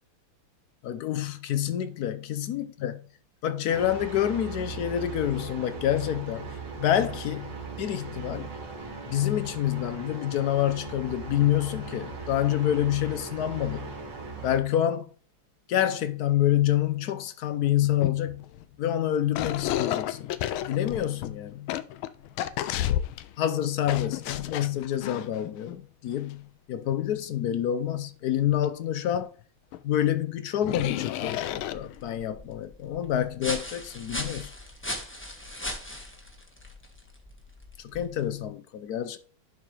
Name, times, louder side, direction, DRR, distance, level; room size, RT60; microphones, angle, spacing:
voice 1, 0.8-3.1 3.4-8.5 9.1-14.0 14.4-15.1 15.7-18.5 18.8-20.3 20.7-21.8 23.4-29.3 29.8-34.5 37.8-39.2, left 11 dB, 70° left, 0.9 m, -27 dB
sound 1, 3.7-14.6, right 4 dB, 60° right, 2.7 m, -39 dB
sound 2, 17.6-17.7 18.0-18.7 19.3-23.4 23.9-25.7 26.1-26.3 28.6-28.7 29.1-29.2 29.7-29.8 30.6-32.2, left 12 dB, 85° left, 1.5 m, -31 dB
sound 3, 31.5-38.4, left 1 dB, 10° left, 0.9 m, -39 dB
11.0 x 4.4 x 3.3 m
omnidirectional pair, 2.2 m